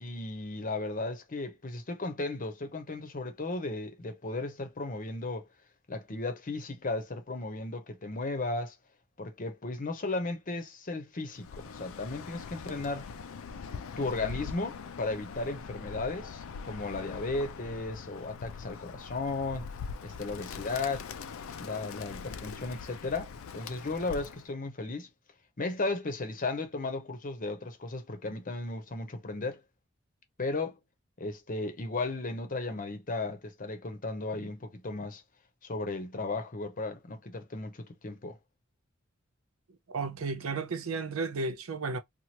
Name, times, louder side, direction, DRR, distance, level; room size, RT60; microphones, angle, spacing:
voice 1, 0.0-5.5 5.9-8.7 9.2-13.1 14.0-19.7 20.0-21.1 21.6-25.1 25.6-29.6 30.4-30.8 31.2-35.2 35.6-38.4, left 3 dB, 40° left, 0.8 m, -35 dB
Bird, 11.4-24.5, left 5 dB, 80° left, 0.4 m, -42 dB
voice 2, 39.9-42.0, right 4 dB, 90° right, 0.6 m, -33 dB
3.0 x 2.4 x 2.8 m
head